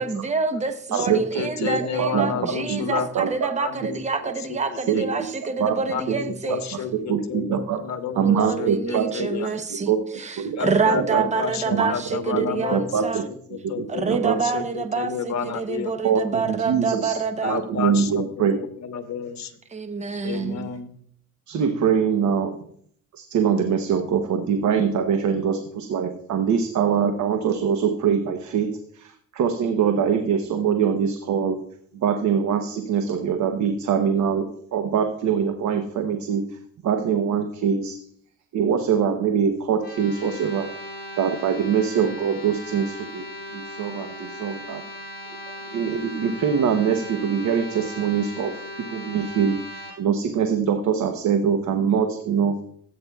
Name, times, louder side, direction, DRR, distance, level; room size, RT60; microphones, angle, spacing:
voice 1, 0.0-6.6 8.1-9.9 10.2-13.3 13.9-17.6 19.7-20.7, right 4 dB, 25° right, 8 dB, 0.9 m, -27 dB
voice 2, 0.9-5.2 5.9-9.5 10.6-12.9 13.5-15.9 17.4-19.5 20.2-20.9, left 7 dB, 65° left, 8 dB, 1.1 m, -31 dB
voice 3, 2.0-2.8 3.1-3.5 4.2-4.3 4.9-5.3 5.6-6.2 7.1-7.8 8.2-9.3 9.7-10.0 10.4-10.6 10.9-11.2 11.7-12.4 12.7-13.2 13.5-14.4 16.0-17.2 17.4-18.6 21.5-22.6 23.1-31.6 31.9-38.0 38.5-40.7 41.2-44.8 45.7-52.6, right 7 dB, 70° right, 6 dB, 1.0 m, -23 dB
sound 1, 39.8-49.9, left 1 dB, 35° left, 3.2 m, -38 dB
15.0 x 8.5 x 2.4 m, 0.64 s
cardioid pair, 90°, 30 cm